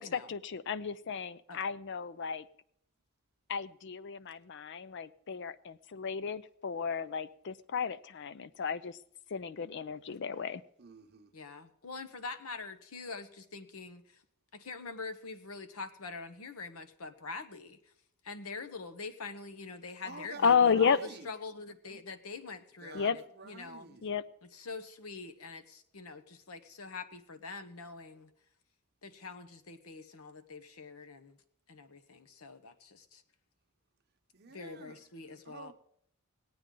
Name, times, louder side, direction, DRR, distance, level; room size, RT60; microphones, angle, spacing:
voice 1, 0.0-2.4 3.5-9.0 9.3-10.6 20.4-21.0 22.9-23.2 24.0-24.2, left 6 dB, 55° left, 0.5 m, -32 dB
voice 2, 10.8-11.3 20.0-20.4 20.7-21.2 22.8-23.1 23.4-24.1 34.3-35.0 35.4-35.7, right 4 dB, 50° right, 0.9 m, -49 dB
voice 3, 11.3-14.2 14.5-17.8 18.2-21.0 21.2-24.0 24.5-28.3 29.0-31.4 31.7-33.2 34.5-35.7, left 4 dB, 80° left, 1.0 m, -44 dB
18.5 x 8.7 x 3.8 m
head